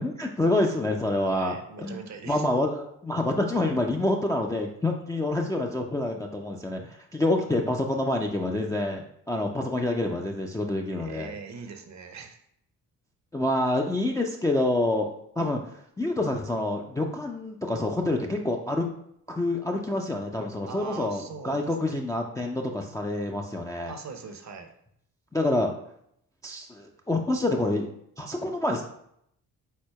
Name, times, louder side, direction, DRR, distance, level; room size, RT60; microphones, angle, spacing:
voice 1, 0.0-1.5 1.8-11.3 13.3-15.6 16.0-18.9 19.3-23.9 25.3-25.7 26.4-27.9 28.2-28.8, left 1 dB, 10° left, 0 dB, 0.4 m, -27 dB
voice 2, 1.3-2.5 10.9-12.4 20.7-21.9 23.8-24.7, right 5 dB, 40° right, 6 dB, 0.7 m, -41 dB
4.7 x 3.9 x 2.2 m, 0.71 s
hypercardioid pair, 50°, 46 cm